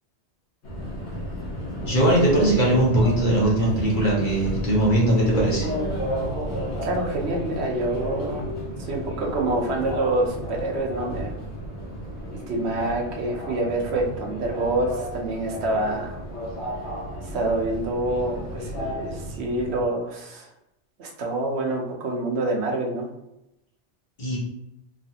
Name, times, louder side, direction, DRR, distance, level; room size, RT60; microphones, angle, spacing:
Subway metro underground, 0.6-19.9, equal, 75° left, 1.1 m, -32 dB
voice 1, 1.9-5.7 24.2-24.4, right 1 dB, 50° left, -4 dB, 1.0 m, -20 dB
voice 2, 6.8-8.5 8.8-11.3 12.3-16.2 17.3-20.5 21.0-23.1, right 2 dB, 70° right, 1 dB, 0.9 m, -27 dB
3.1 x 2.3 x 2.7 m, 0.86 s
omnidirectional pair, 1.2 m